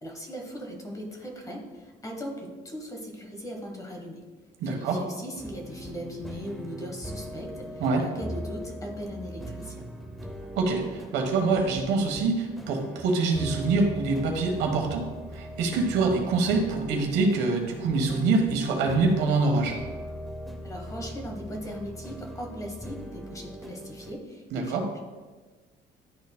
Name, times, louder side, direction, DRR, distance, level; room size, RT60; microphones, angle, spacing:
voice 1, 0.0-4.2 4.6-9.8 20.6-25.0, equal, 20° left, 1 dB, 1.2 m, -39 dB
voice 2, 4.6-5.0 7.8-8.0 10.5-15.1 15.3-19.8 24.5-24.8, right 3 dB, 85° right, 2 dB, 1.3 m, -25 dB
sound 1, 5.4-24.1, equal, ahead, 0.7 m, -40 dB
11.0 x 4.3 x 2.2 m, 1.3 s
cardioid pair, 110°, 17 cm